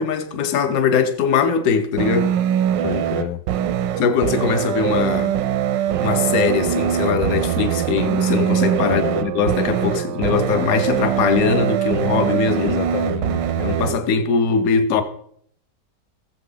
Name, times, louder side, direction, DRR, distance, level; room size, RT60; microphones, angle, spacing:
voice 1, 0.0-2.3 4.0-5.3 6.0-12.8 13.6-15.0, left 6 dB, 60° left, 1.2 m, -21 dB
sound 1, 2.0-14.0, right 10 dB, 85° right, 1.3 m, -22 dB
voice 2, 2.8-3.4 8.8-9.3 12.6-13.7, left 11 dB, 85° left, 1.3 m, -28 dB
sound 2, 5.9-10.9, right 12 dB, 70° right, 0.9 m, -30 dB
16.0 x 7.4 x 3.9 m
omnidirectional pair, 1.9 m